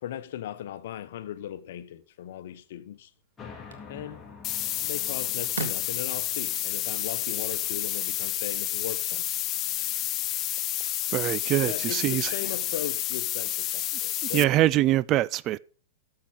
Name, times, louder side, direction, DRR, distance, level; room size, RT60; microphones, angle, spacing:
voice 1, 0.0-3.1 3.9-4.2 4.8-9.2 11.6-14.5, left 11 dB, 65° left, 1.0 m, -38 dB
sound 1, 2.7-8.9, right 7 dB, 75° right, 1.9 m, -45 dB
sound 2, 3.4-14.5, left 5 dB, 15° left, 2.8 m, -51 dB
sound 3, 4.4-14.4, left 14 dB, 35° left, 0.5 m, -30 dB
voice 2, 11.1-12.3 14.2-15.6, right 14 dB, 35° right, 0.4 m, -24 dB
12.5 x 7.7 x 5.3 m
hypercardioid pair, 110°, 0 cm